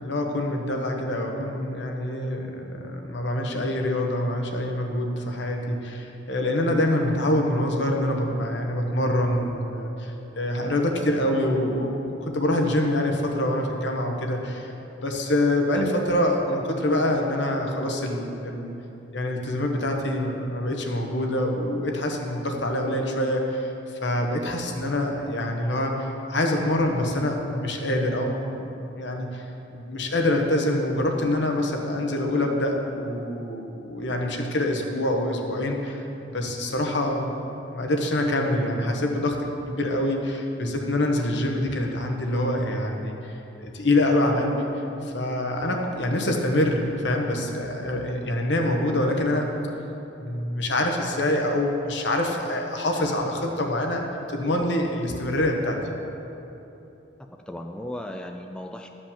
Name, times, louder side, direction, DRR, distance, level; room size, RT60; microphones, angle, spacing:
voice 1, 0.0-18.7 19.1-23.7 24.0-28.7 28.9-29.4 29.7-37.3 37.7-44.7 45.0-49.5 50.2-55.8, left 1 dB, 70° left, 2 dB, 1.2 m, -25 dB
voice 2, 57.3-58.9, left 1 dB, 5° left, 4 dB, 0.3 m, -36 dB
11.5 x 5.3 x 7.3 m, 3.0 s
head